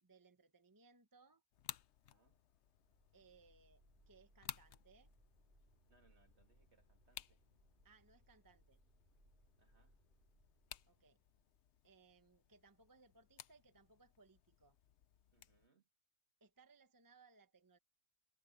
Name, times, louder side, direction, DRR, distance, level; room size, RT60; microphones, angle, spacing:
voice 1, 0.0-1.4 3.1-5.1 7.8-8.8 10.9-11.2 11.8-14.8 16.4-17.8, right 4 dB, 15° right, 0.9 m, -68 dB
sound 1, 1.5-15.7, left 10 dB, 60° left, 0.9 m, -58 dB
voice 2, 2.0-2.5 5.9-7.4 9.6-10.1 15.3-15.9, right 3 dB, 55° right, 2.7 m, -75 dB
sound 2, 2.5-11.9, right 1 dB, 35° right, 6.3 m, -72 dB
omnidirectional pair, 1.4 m